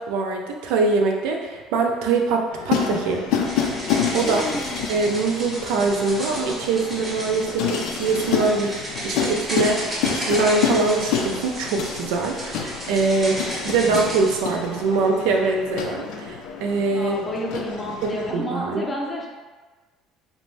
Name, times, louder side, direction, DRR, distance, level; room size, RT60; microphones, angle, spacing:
voice 1, 0.0-3.3 3.5-3.9 4.1-4.5 4.9-17.2 18.0-18.9, right 4 dB, 90° right, 2 dB, 0.3 m, -23 dB
sound 1, 2.5-18.3, left 7 dB, 80° left, 0.3 m, -29 dB
sound 2, 3.4-14.4, right 1 dB, 20° right, 0.7 m, -33 dB
voice 2, 4.2-4.8 16.9-19.3, left 1 dB, 15° left, -2 dB, 0.5 m, -30 dB
2.5 x 2.1 x 3.1 m, 1.3 s
cardioid pair, 130°, 0 cm